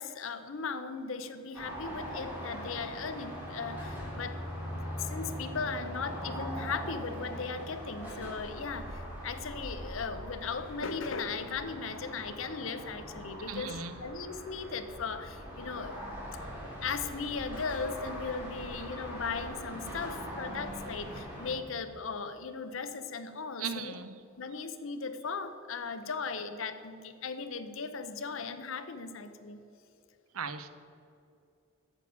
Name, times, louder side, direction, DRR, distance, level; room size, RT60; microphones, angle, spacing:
voice 1, 0.0-16.0 16.3-16.4 16.8-23.9 24.4-29.6, left 5 dB, 65° left, 10 dB, 0.7 m, -37 dB
sound 1, 1.5-21.5, equal, 10° right, 3.0 m, -41 dB
voice 2, 13.5-14.0 23.6-24.2 24.5-24.6 30.3-30.7, right 5 dB, 85° right, 11 dB, 0.7 m, -37 dB
8.9 x 7.0 x 8.3 m, 2.6 s
head